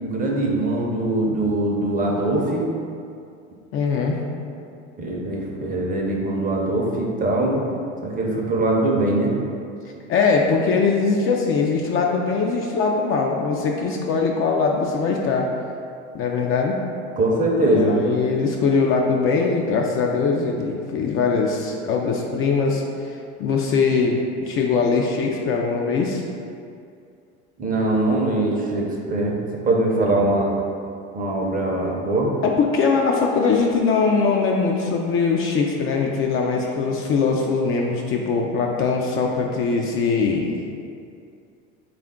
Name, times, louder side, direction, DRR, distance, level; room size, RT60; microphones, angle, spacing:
voice 1, 0.0-2.7 5.0-7.6 8.0-9.3 17.2-18.0 27.6-29.4 29.6-30.5 31.1-32.3, right 2 dB, 25° right, -1 dB, 0.6 m, -22 dB
voice 2, 3.7-4.2 10.1-15.5 16.1-16.8 17.6-22.8 23.4-26.2 32.4-40.6, left 4 dB, 40° left, 0 dB, 0.4 m, -21 dB
3.6 x 2.4 x 3.5 m, 2.4 s
hypercardioid pair, 85°, 34 cm